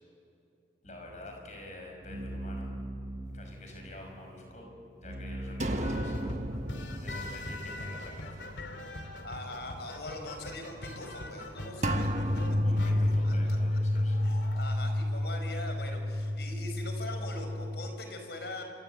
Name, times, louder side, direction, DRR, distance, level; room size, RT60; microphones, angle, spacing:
voice 1, 0.8-2.7 3.3-4.7 5.0-6.1 7.0-8.6 12.6-14.3, left 1 dB, 40° left, 2 dB, 5.9 m, -48 dB
sound 1, 0.8-7.1, right 1 dB, 85° right, 5.1 m, -42 dB
sound 2, 5.6-8.7 9.1-9.2 11.8-17.9, left 1 dB, 40° right, 1.3 m, -30 dB
sound 3, 5.8-14.7, left 1 dB, 85° left, 2.6 m, -43 dB
voice 2, 9.2-12.1 13.2-13.6 14.2-18.6, left 2 dB, 70° left, 5 dB, 4.8 m, -42 dB
27.5 x 25.0 x 7.9 m, 2.7 s
head